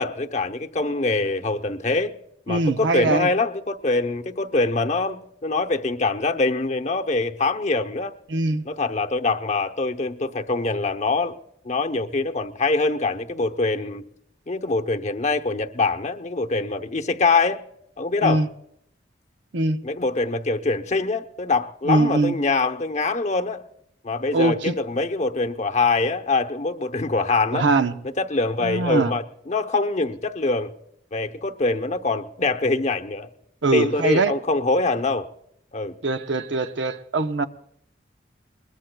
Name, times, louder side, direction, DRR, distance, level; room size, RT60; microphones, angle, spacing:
voice 1, 0.0-2.1 2.5-8.1 8.7-11.4 11.6-14.0 14.5-17.6 18.0-18.4 19.8-23.6 24.0-27.7 28.2-30.7 31.1-33.3 33.7-35.3 35.7-36.0, left 3 dB, 40° left, 0.8 m, -24 dB
voice 2, 2.5-3.3 8.3-8.7 18.2-18.5 19.5-19.8 21.8-22.3 24.3-24.8 27.5-27.9 28.6-29.1 33.6-34.3 36.0-37.5, right 2 dB, 75° right, 0.8 m, -22 dB
21.5 x 21.0 x 2.3 m
head